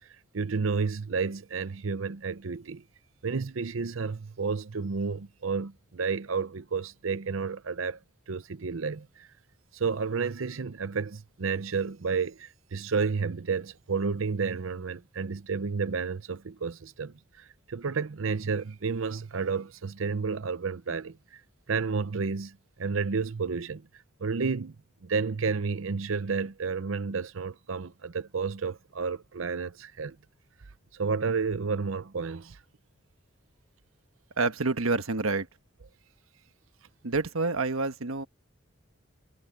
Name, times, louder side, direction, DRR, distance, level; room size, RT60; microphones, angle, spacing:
voice 1, 0.3-2.8 3.2-8.0 8.3-9.3 9.7-21.4 21.7-23.8 24.2-24.7 25.0-30.2 30.9-32.6, right 5 dB, 70° right, 0.7 m, -31 dB
voice 2, 34.4-35.5 37.0-38.3, right 3 dB, 90° right, 1.3 m, -28 dB
head